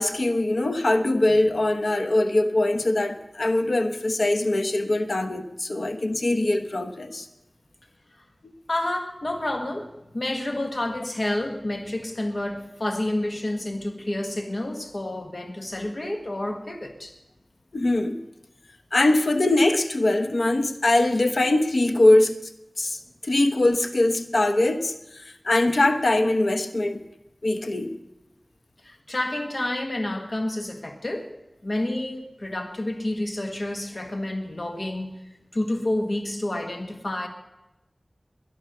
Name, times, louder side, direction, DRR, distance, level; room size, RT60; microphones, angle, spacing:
voice 1, 0.0-7.3 17.7-18.2 18.9-22.3 22.8-27.0 27.4-27.9, left 2 dB, 90° left, 8 dB, 1.1 m, -22 dB
voice 2, 8.7-17.1 28.8-31.3 31.6-35.2 35.5-37.3, left 1 dB, 60° left, 5 dB, 1.6 m, -29 dB
22.0 x 9.8 x 6.7 m, 0.96 s
wide cardioid pair, 55°, 0 cm